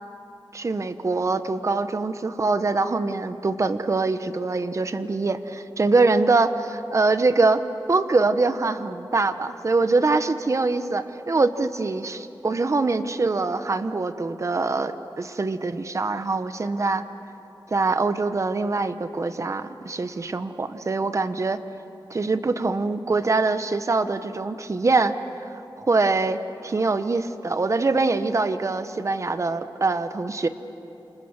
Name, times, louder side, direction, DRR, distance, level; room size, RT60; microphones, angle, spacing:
voice 1, 0.5-7.6 7.9-17.0 17.7-21.6 22.1-25.1 25.8-30.5, right 3 dB, 40° right, 11 dB, 1.0 m, -23 dB
29.0 x 26.0 x 7.3 m, 2.9 s
wide cardioid pair, 135°, 8 cm